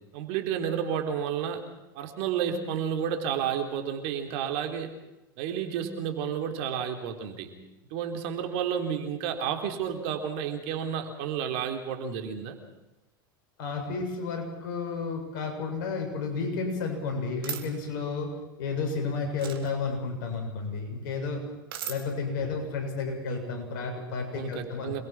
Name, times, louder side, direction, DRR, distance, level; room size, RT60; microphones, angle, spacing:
voice 1, 0.1-1.6 2.0-4.9 5.4-7.5 7.9-12.6 22.4-22.5 24.3-25.0, right 8 dB, 60° right, 5 dB, 3.7 m, -31 dB
voice 2, 13.6-18.3 18.6-21.4 21.9-24.9, left 4 dB, 65° left, 3 dB, 7.4 m, -32 dB
sound 1, 17.4-17.6 19.4-19.7 21.7-22.0, right 9 dB, 75° right, 2.7 m, -35 dB
27.5 x 22.0 x 6.1 m, 0.99 s
hypercardioid pair, 90°, 12 cm